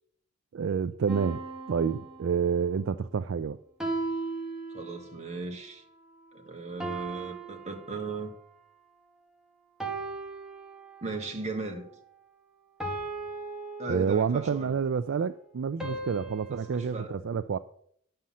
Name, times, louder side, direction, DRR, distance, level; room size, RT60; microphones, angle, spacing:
voice 1, 0.5-1.4 1.7-3.6 13.9-17.6, right 6 dB, 60° right, 0.4 m, -28 dB
sound 1, 1.1-2.7 3.8-5.3 6.8-8.5 9.8-11.3 12.8-14.5 15.8-16.8, right 3 dB, 5° right, 1.4 m, -37 dB
voice 2, 4.7-5.8 6.3-8.3 11.0-11.9 13.8-14.8 15.8-16.0 16.5-17.2, right 3 dB, 30° right, 1.6 m, -37 dB
10.5 x 5.6 x 7.4 m
head